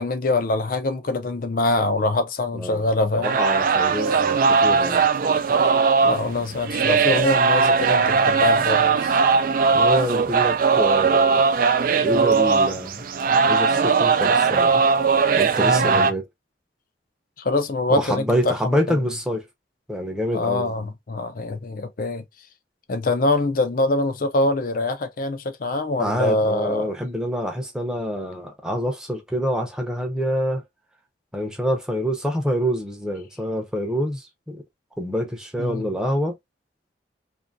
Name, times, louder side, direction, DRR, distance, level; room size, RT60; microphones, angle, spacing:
voice 1, 0.0-3.4 6.0-9.2 15.6-16.1 17.4-19.0 20.3-22.2 22.9-26.9 35.6-35.8, left 2 dB, 50° left, 0.5 m, -24 dB
voice 2, 2.5-2.8 3.1-5.1 9.7-11.4 12.0-13.0 13.5-14.8 15.4-16.2 17.9-19.4 19.9-20.9 26.0-30.6 31.3-34.6 35.0-36.3, equal, 5° right, 0.6 m, -26 dB
sound 1, 3.2-16.1, right 5 dB, 50° right, 0.3 m, -19 dB
2.7 x 2.6 x 2.5 m
head